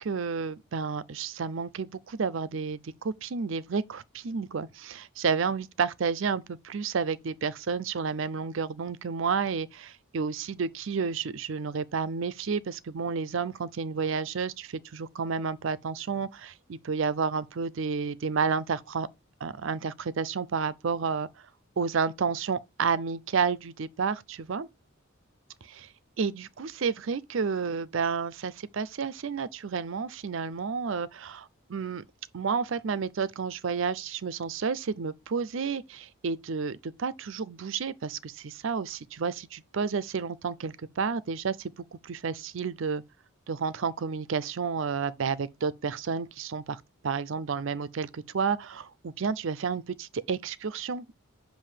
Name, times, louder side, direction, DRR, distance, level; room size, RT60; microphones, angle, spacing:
voice 1, 0.0-19.1 19.4-21.3 21.8-24.7 26.2-32.0 32.3-43.0 43.5-51.2, right 5 dB, 60° right, 0.5 m, -31 dB
7.5 x 2.6 x 5.0 m
head